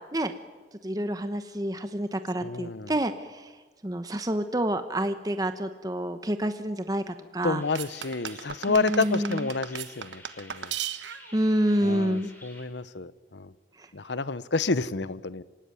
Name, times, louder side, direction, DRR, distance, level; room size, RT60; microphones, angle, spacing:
voice 1, 0.8-3.5 3.8-7.6 8.7-9.5 11.3-12.3 13.8-13.9, right 1 dB, 20° right, 9 dB, 1.0 m, -28 dB
voice 2, 2.4-2.9 7.4-10.8 11.8-13.5 13.9-15.4, left 3 dB, 75° left, 16 dB, 0.9 m, -29 dB
sound 1, 7.6-12.6, left 1 dB, 10° left, 4.5 m, -51 dB
sound 2, 7.7-11.4, right 9 dB, 80° right, 1.1 m, -36 dB
26.5 x 16.0 x 9.7 m, 1.3 s
head